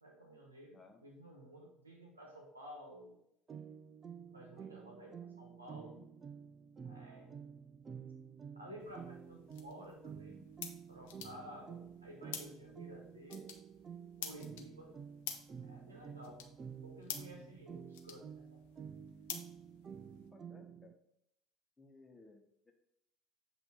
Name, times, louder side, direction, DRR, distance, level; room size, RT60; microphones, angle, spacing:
voice 1, 0.0-3.2 4.2-6.0 6.8-7.4 8.5-10.4 10.9-13.5 14.2-14.9 15.6-16.4 16.7-18.6, equal, 85° right, 1 dB, 1.0 m, -53 dB
sound 1, 3.5-20.9, right 7 dB, 35° right, 0.4 m, -50 dB
sound 2, 8.8-20.3, left 8 dB, 65° left, 0.7 m, -50 dB
voice 2, 20.3-20.9 21.8-22.7, left 3 dB, 15° left, 2 dB, 1.1 m, -60 dB
7.9 x 2.8 x 4.6 m, 0.77 s
figure-of-eight pair, 60°, 0 cm